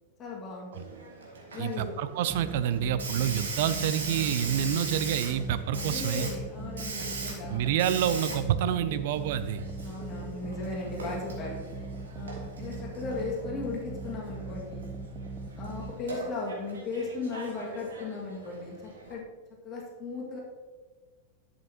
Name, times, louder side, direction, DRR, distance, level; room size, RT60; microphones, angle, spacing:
voice 1, 0.2-0.9 1.5-1.9 5.7-7.6 9.8-11.6 12.1-14.9 15.6-19.2 19.6-20.4, left 3 dB, 30° left, -3 dB, 2.0 m, -37 dB
Hiss, 0.7-19.1, right 3 dB, 70° right, 1.8 m, -40 dB
voice 2, 1.6-6.3 7.5-9.7, right 10 dB, 50° right, 12 dB, 0.5 m, -28 dB
sound 1, 2.3-15.9, right 3 dB, 20° right, 0.7 m, -40 dB
11.0 x 7.5 x 2.9 m, 1.4 s
figure-of-eight pair, 90°, 0 cm